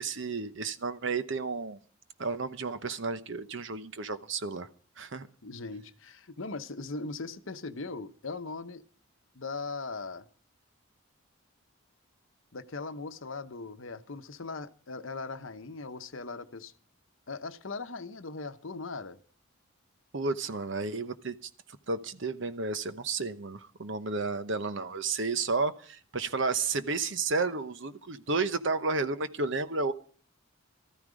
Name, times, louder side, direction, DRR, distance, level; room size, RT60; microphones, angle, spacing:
voice 1, 0.0-1.8 2.2-4.7 5.0-5.3 20.1-21.5 21.9-29.9, right 3 dB, 60° right, 0.9 m, -32 dB
voice 2, 5.4-8.8 9.3-10.3 12.5-16.7 17.3-19.2, left 3 dB, 65° left, 0.9 m, -39 dB
14.0 x 13.5 x 5.1 m
head